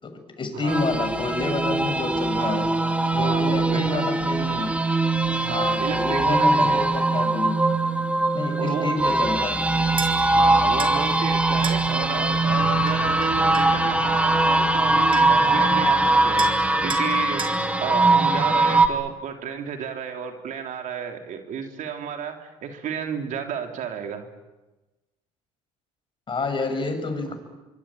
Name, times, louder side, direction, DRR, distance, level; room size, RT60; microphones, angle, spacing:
voice 1, 0.0-2.8 3.1-4.8 5.5-7.8 8.3-9.8 26.3-27.3, left 3 dB, 35° left, 6 dB, 7.0 m, -29 dB
voice 2, 0.5-0.9 2.3-2.7 3.1-4.1 5.4-6.8 8.6-8.9 10.3-16.5 16.8-17.5 17.8-24.3 27.2-27.3, right 7 dB, 60° right, 5 dB, 3.4 m, -32 dB
sound 1, 0.7-18.9, right 2 dB, 10° right, 2.7 m, -21 dB
sound 2, 10.0-10.1 10.8-11.0 11.6-11.8 12.9-13.7 14.8-14.9 15.1-15.5 16.4-16.6 16.9-17.1 17.4-17.6, right 5 dB, 35° right, 4.6 m, -33 dB
25.0 x 24.0 x 8.9 m, 1.1 s
hypercardioid pair, 70°, 14 cm